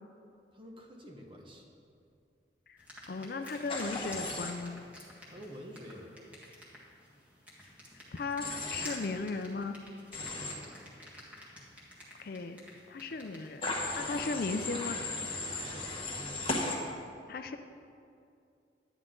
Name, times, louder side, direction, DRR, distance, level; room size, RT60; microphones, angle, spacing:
voice 1, 0.5-1.6 5.3-6.5 10.2-10.7 15.6-16.7, equal, 30° right, 1 dB, 1.1 m, -49 dB
sound 1, 2.8-13.9, equal, 10° right, 1.7 m, -52 dB
voice 2, 3.1-4.8 8.1-9.8 12.2-12.6 12.9-15.0 17.3-17.6, left 3 dB, 50° left, 8 dB, 0.4 m, -36 dB
Human voice / Train, 3.7-4.5 8.4-9.0 10.1-10.5 13.6-16.8, left 2 dB, 30° left, 1.4 m, -36 dB
10.5 x 10.0 x 3.8 m, 2.5 s
head